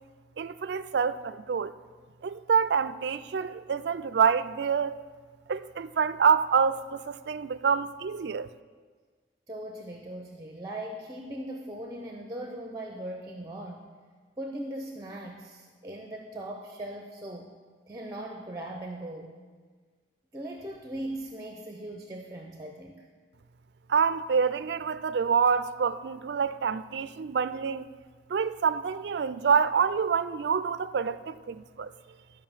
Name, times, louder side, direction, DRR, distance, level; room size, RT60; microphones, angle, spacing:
voice 1, 0.4-1.7 2.2-5.0 5.5-8.5 23.9-27.9 28.3-31.9, right 6 dB, 65° right, 0.4 m, -27 dB
voice 2, 9.5-13.9 14.4-17.5 17.9-19.3 20.3-23.1, right 1 dB, 20° right, 0.8 m, -39 dB
12.0 x 5.3 x 7.3 m
head